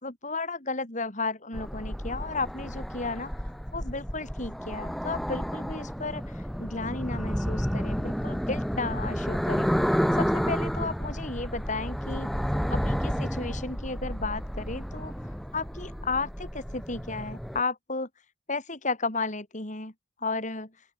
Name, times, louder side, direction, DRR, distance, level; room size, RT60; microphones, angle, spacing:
voice 1, 0.0-3.3 3.7-9.7 10.2-12.3 12.7-15.1 15.5-18.1 18.5-19.9 20.2-20.7, left 3 dB, 40° left, 3.1 m, -33 dB
sound 1, 1.5-17.6, equal, ahead, 0.6 m, -31 dB
open air
head